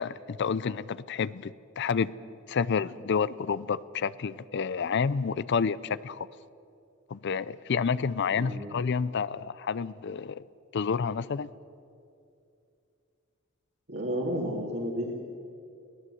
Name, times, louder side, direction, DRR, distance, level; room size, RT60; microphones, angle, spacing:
voice 1, 0.0-2.1 2.5-6.3 7.1-10.4 10.7-11.5, left 6 dB, 55° left, 19 dB, 0.5 m, -29 dB
voice 2, 13.9-15.1, equal, 55° right, -3 dB, 2.7 m, -31 dB
23.0 x 17.5 x 7.8 m, 2.5 s
head